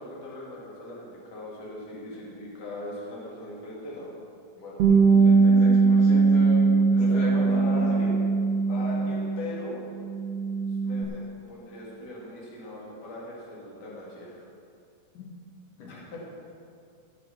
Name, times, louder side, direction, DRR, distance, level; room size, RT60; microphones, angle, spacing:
voice 1, 0.0-4.1 4.5-5.2 7.0-8.2 8.7-9.8 10.7-11.2 11.5-14.4 15.9-16.3, left 1 dB, 30° left, -5 dB, 2.7 m, -39 dB
Bass guitar, 4.8-9.5 9.8-11.0, right 4 dB, 65° right, 1.8 m, -21 dB
voice 2, 5.1-8.1 15.1-15.2 15.8-15.9, left 2 dB, 65° left, -4 dB, 3.0 m, -35 dB
18.0 x 6.0 x 5.9 m, 2.4 s
omnidirectional pair, 4.2 m